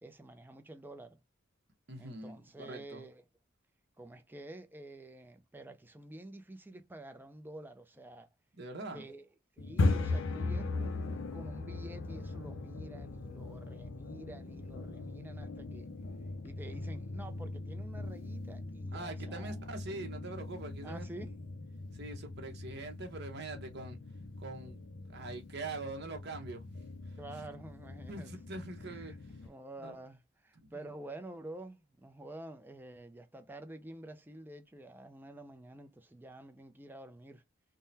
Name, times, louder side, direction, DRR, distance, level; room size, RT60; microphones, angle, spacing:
voice 1, 0.0-1.2 2.0-3.2 4.0-8.3 8.9-9.3 9.6-15.9 16.4-19.6 20.8-21.4 27.2-28.3 28.9-37.4, right 1 dB, 10° right, 0.4 m, -49 dB
voice 2, 1.9-3.0 8.5-9.1 18.9-21.0 21.9-24.0 24.4-24.8 25.1-26.6 28.1-29.1 29.8-30.0 30.6-30.9, right 2 dB, 55° right, 1.0 m, -43 dB
sound 1, 9.6-29.5, left 3 dB, 65° left, 0.4 m, -39 dB
3.6 x 2.1 x 2.7 m
head